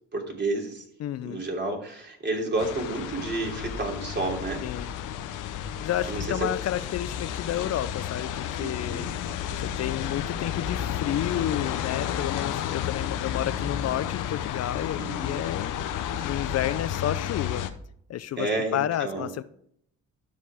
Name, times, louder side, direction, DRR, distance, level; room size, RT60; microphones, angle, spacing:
voice 1, 0.1-0.8 1.2-4.6 6.1-6.5 8.6-9.1 15.0-15.4 18.4-19.3, right 2 dB, 35° right, 3.1 m, -30 dB
voice 2, 1.0-1.4 4.6-4.9 5.8-9.1 9.6-15.7 16.2-17.7 18.1-19.4, left 11 dB, 55° left, 0.5 m, -31 dB
sound 1, 2.6-17.7, left 10 dB, 85° left, 0.9 m, -32 dB
12.0 x 5.3 x 4.9 m
cardioid pair, 90°, 30 cm